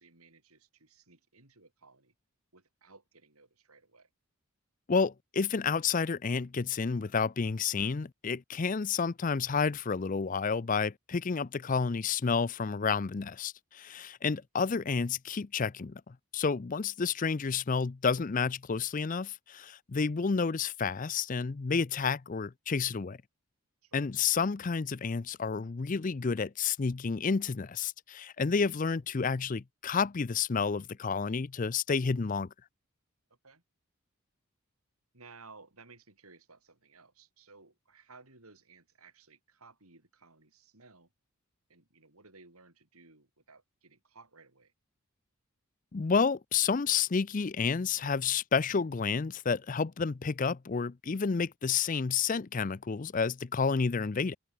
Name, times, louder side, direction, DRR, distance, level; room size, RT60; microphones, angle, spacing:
voice 1, 0.0-2.1 2.5-4.1 13.9-14.1 23.8-24.1 33.3-33.6 35.1-41.1 41.7-44.7, right 4 dB, 85° right, 4.7 m, -58 dB
voice 2, 4.9-23.2 23.9-32.5 45.9-54.4, left 5 dB, 35° left, 0.5 m, -30 dB
head